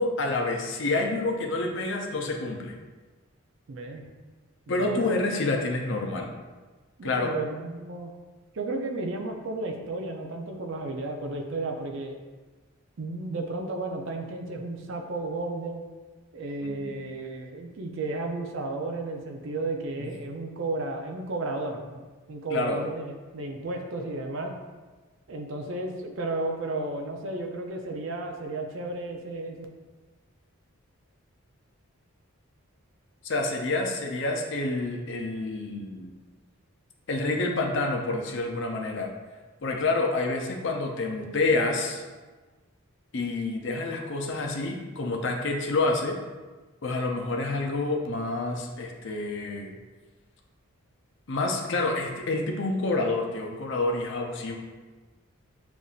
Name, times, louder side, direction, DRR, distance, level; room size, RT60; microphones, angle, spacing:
voice 1, 0.0-2.7 4.7-6.3 7.0-7.3 16.6-16.9 20.0-20.1 22.5-22.8 33.2-36.1 37.1-39.1 39.6-42.0 43.1-46.1 46.8-49.7 51.3-54.6, left 2 dB, 55° left, 1 dB, 0.5 m, -28 dB
voice 2, 3.7-4.0 4.7-5.1 7.0-8.2 8.5-12.2 13.0-15.8 16.3-24.5 25.3-29.7, right 2 dB, 60° right, 2 dB, 0.5 m, -33 dB
6.9 x 2.6 x 2.4 m, 1.3 s
head